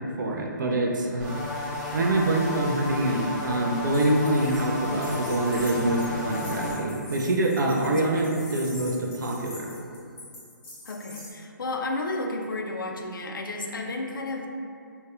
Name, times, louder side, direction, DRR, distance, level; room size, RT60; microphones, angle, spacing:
voice 1, 0.0-1.3 1.9-9.8, right 1 dB, 70° right, 1 dB, 0.4 m, -25 dB
sound 1, 1.2-6.7, left 2 dB, 5° right, 0.4 m, -33 dB
sound 2, 3.9-11.3, left 1 dB, 15° left, 0.7 m, -45 dB
voice 2, 7.6-8.3 10.9-14.5, left 2 dB, 90° left, 2 dB, 0.4 m, -32 dB
2.6 x 2.2 x 2.4 m, 2.4 s
hypercardioid pair, 145°, 11 cm